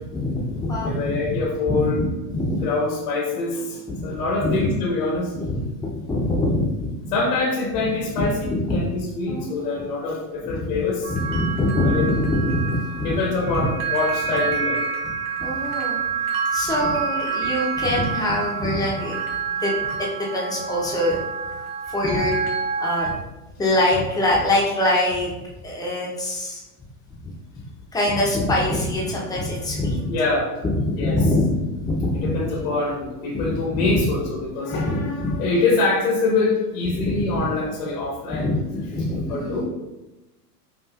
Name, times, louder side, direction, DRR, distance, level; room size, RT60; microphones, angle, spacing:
voice 1, 0.1-1.3 1.7-2.7 3.9-4.1 4.4-4.7 5.3-7.3 7.7-8.8 9.3-9.7 10.4-13.2 13.5-13.7 14.2-14.4 15.4-19.2 19.5-19.7 20.0-22.4 22.8-23.1 23.6-25.3 25.6-26.6 27.9-30.3 30.6-32.7 33.3-34.1 34.7-35.4 36.8-37.4 38.3-39.6, left 1 dB, 10° left, -3 dB, 0.8 m, -24 dB
voice 2, 0.8-2.0 2.6-5.4 7.1-11.1 11.8-12.2 13.0-14.8 29.1-29.4 30.1-30.5 31.0-31.2 32.2-38.4 39.3-39.6, left 3 dB, 75° left, -3 dB, 1.3 m, -25 dB
sound 1, 11.0-23.1, right 6 dB, 60° right, 1.1 m, -28 dB
5.4 x 2.6 x 2.5 m, 1.0 s
hypercardioid pair, 125°, 47 cm